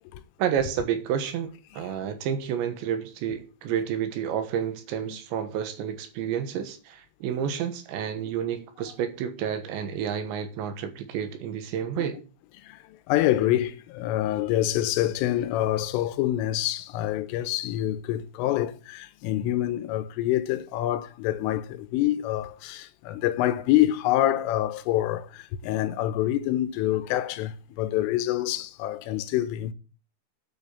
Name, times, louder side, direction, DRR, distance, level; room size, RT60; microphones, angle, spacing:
voice 1, 0.4-12.2, right 8 dB, 70° right, 3.3 m, -30 dB
voice 2, 12.6-29.7, left 13 dB, 80° left, 3.3 m, -26 dB
9.1 x 7.9 x 7.1 m
omnidirectional pair, 5.8 m